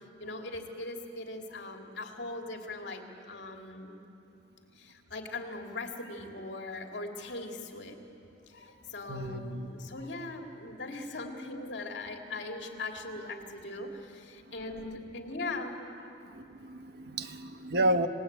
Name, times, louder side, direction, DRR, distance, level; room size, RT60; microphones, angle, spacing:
voice 1, 0.2-4.0 4.7-8.0 8.5-16.1 17.3-17.4, left 2 dB, 65° left, 2 dB, 2.7 m, -40 dB
voice 2, 9.1-9.7 16.3-18.1, right 1 dB, 60° right, 8 dB, 1.3 m, -31 dB
28.5 x 19.5 x 8.8 m, 2.9 s
head